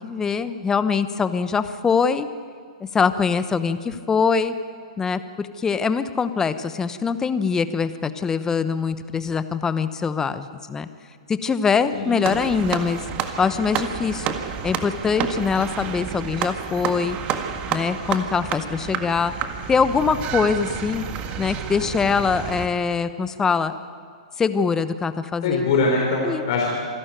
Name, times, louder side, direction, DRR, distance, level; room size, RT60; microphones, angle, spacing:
voice 1, 0.0-2.3 2.8-4.5 5.0-10.9 11.3-13.0 13.4-14.3 14.6-17.2 17.7-19.3 19.7-21.0 21.4-23.7 24.4-25.6 26.2-26.4, left 5 dB, 15° left, 12 dB, 1.0 m, -23 dB
voice 2, 11.9-12.4 25.4-26.7, left 3 dB, 55° left, -2 dB, 4.9 m, -22 dB
sound 1, 12.2-22.7, right 8 dB, 35° right, 1.7 m, -30 dB
26.0 x 12.0 x 9.2 m, 2.1 s
hypercardioid pair, 120°, 4 cm